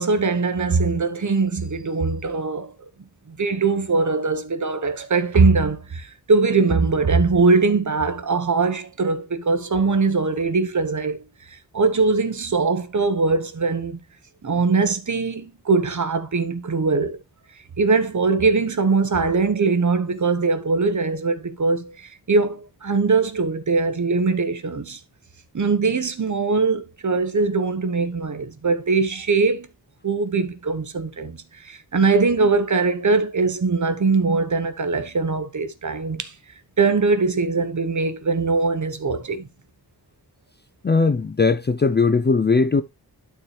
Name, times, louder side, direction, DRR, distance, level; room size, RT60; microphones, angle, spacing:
voice 1, 0.0-2.7 3.3-11.2 11.5-14.0 14.4-17.2 17.8-25.0 25.5-29.7 30.0-36.3 36.8-39.5, right 4 dB, 50° right, 1.1 m, -21 dB
voice 2, 40.8-42.8, left 4 dB, 30° left, 0.4 m, -19 dB
11.5 x 4.5 x 3.3 m
wide cardioid pair, 95°, 39 cm